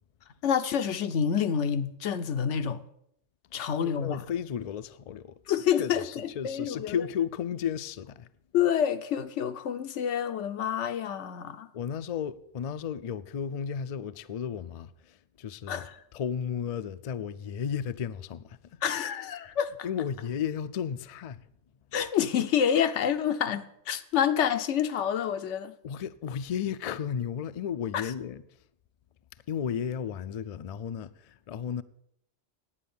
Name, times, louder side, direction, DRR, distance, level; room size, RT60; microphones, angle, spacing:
voice 1, 0.4-2.8 3.5-4.2 5.5-6.9 8.5-11.7 15.7-16.0 18.8-19.7 21.9-25.7 27.9-28.1, left 8 dB, 90° left, 1.0 m, -28 dB
voice 2, 3.5-5.4 5.8-8.3 11.7-15.9 16.1-18.8 19.8-21.4 25.8-28.4 29.5-31.8, left 8 dB, 60° left, 0.4 m, -34 dB
9.7 x 8.5 x 7.0 m
omnidirectional pair, 1.2 m